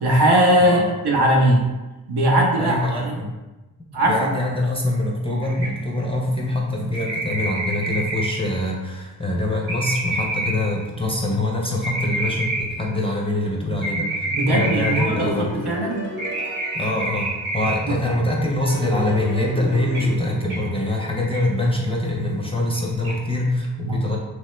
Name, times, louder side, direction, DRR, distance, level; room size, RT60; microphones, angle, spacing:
voice 1, 0.0-1.7 2.1-3.2 3.9-4.3 14.3-16.1 17.9-18.0 23.8-24.0, right 1 dB, 60° right, 0 dB, 0.7 m, -19 dB
voice 2, 2.6-3.4 4.0-15.6 16.7-17.3 17.5-24.2, left 1 dB, 15° left, -2 dB, 0.6 m, -24 dB
sound 1, 5.4-6.0 6.9-8.5 9.7-10.8 11.8-12.9 13.8-15.4 16.2-17.9 19.3-19.4 19.9-20.1 20.5-20.7 21.3-21.5 22.7-22.8 23.0-23.2, right 2 dB, 85° right, 1.1 m, -28 dB
sound 2, 15.1-17.9 18.6-21.4, equal, 25° right, 0.7 m, -34 dB
3.1 x 2.0 x 3.1 m, 1.1 s
cardioid pair, 45°, 45 cm